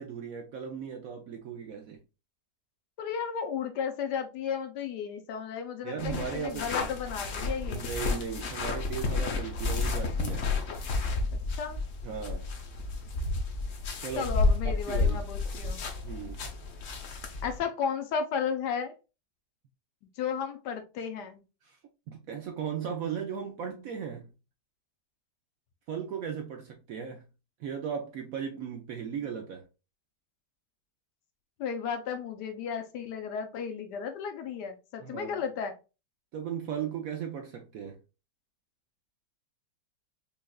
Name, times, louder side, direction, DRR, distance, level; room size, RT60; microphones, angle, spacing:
voice 1, 0.0-2.0 5.8-6.7 7.7-10.5 12.0-12.5 14.0-14.3 14.6-15.2 16.0-16.4 21.6-21.8 22.1-24.3 25.9-27.3 27.6-29.7 35.0-35.4 36.3-38.0, right 7 dB, 70° right, 0.8 m, -37 dB
voice 2, 3.0-7.8 11.3-11.8 14.2-15.8 17.4-18.9 20.2-21.4 31.6-35.7, left 6 dB, 70° left, 1.2 m, -34 dB
sound 1, 6.0-17.6, left 3 dB, 55° left, 1.0 m, -31 dB
5.3 x 2.4 x 2.3 m
omnidirectional pair, 1.9 m